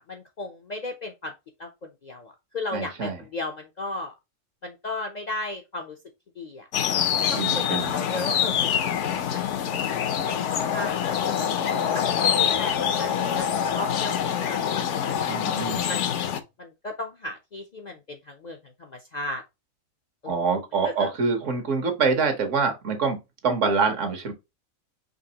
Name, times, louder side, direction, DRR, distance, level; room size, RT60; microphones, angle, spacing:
voice 1, 0.0-1.3 1.6-4.1 4.6-6.0 6.4-6.7 7.3-9.4 9.9-10.9 11.2-11.5 11.9-15.1 15.9-16.2 16.6-19.4 20.2-20.4 21.0-21.1, left 2 dB, 55° left, 0.5 m, -36 dB
voice 2, 2.7-3.2 7.3-8.0 15.3-15.9 20.3-23.2 23.4-24.3, right 4 dB, 70° right, 1.3 m, -25 dB
sound 1, 6.7-16.4, left 8 dB, 70° left, 0.9 m, -25 dB
5.1 x 2.9 x 2.8 m
omnidirectional pair, 1.3 m